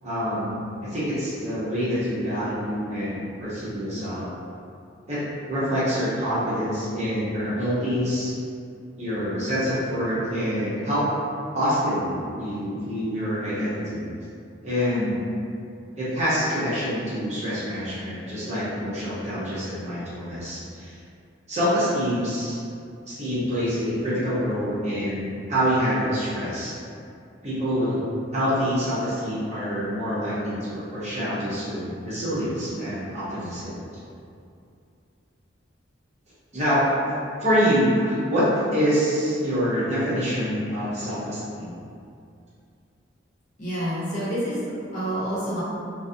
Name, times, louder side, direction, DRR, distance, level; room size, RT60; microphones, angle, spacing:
voice 1, 0.0-4.3 5.1-5.2 5.5-8.3 9.0-11.1 11.5-14.1 14.6-15.2 16.0-20.9 21.5-22.6 23.1-26.7 27.4-28.0 28.3-33.8 36.5-36.9 37.4-41.7, equal, 35° right, -11 dB, 0.7 m, -26 dB
voice 2, 43.6-44.6 44.9-45.6, equal, 45° left, -10 dB, 0.8 m, -28 dB
2.4 x 2.0 x 2.5 m, 2.4 s
head